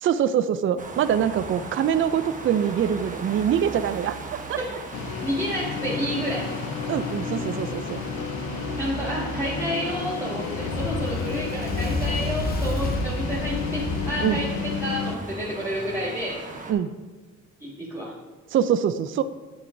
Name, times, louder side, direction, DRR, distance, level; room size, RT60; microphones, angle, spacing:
voice 1, 0.0-4.2 4.5-4.6 6.9-8.0 14.2-14.4 16.7-16.9 18.5-19.2, right 9 dB, 45° right, 12 dB, 0.4 m, -24 dB
sound 1, 0.8-16.7, right 3 dB, 25° right, 1.1 m, -38 dB
sound 2, 4.9-15.2, left 6 dB, 65° left, 0.7 m, -32 dB
voice 2, 5.2-6.5 8.8-14.5 14.8-16.4 17.6-18.1, equal, 10° right, -7 dB, 1.8 m, -30 dB
Fire, 10.6-15.1, left 2 dB, 30° left, 1.2 m, -30 dB
10.0 x 7.5 x 2.7 m, 1.3 s
cardioid pair, 90°, 30 cm